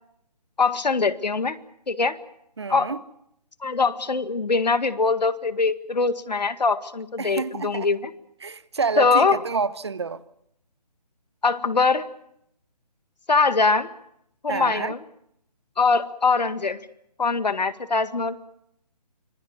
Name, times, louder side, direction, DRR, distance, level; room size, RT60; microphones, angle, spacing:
voice 1, 0.6-1.6 1.9-2.2 2.7-2.9 3.6-8.1 9.0-9.4 11.4-12.1 13.3-13.9 14.4-15.0 15.8-16.8 17.2-18.4, left 4 dB, 80° left, 1.9 m, -22 dB
voice 2, 2.6-3.0 7.2-7.9 8.4-10.2 14.5-14.9, right 4 dB, 40° right, 1.0 m, -28 dB
25.5 x 22.0 x 7.2 m
hypercardioid pair, 175°, 21 cm